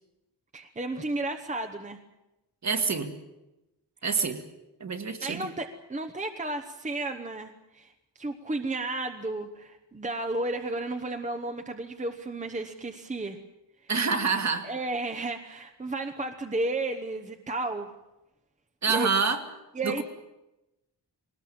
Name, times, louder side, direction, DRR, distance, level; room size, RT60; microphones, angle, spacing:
voice 1, 0.5-2.0 5.2-13.4 13.8-13.9 14.6-17.9 18.9-19.1 19.7-20.0, right 2 dB, 15° right, 6 dB, 1.0 m, -33 dB
voice 2, 2.6-3.1 4.0-4.4 4.8-5.4 13.9-14.7 18.8-19.4 19.8-20.0, right 5 dB, 40° right, 7 dB, 1.9 m, -26 dB
21.5 x 19.0 x 8.7 m, 0.94 s
wide cardioid pair, 175°, 42 cm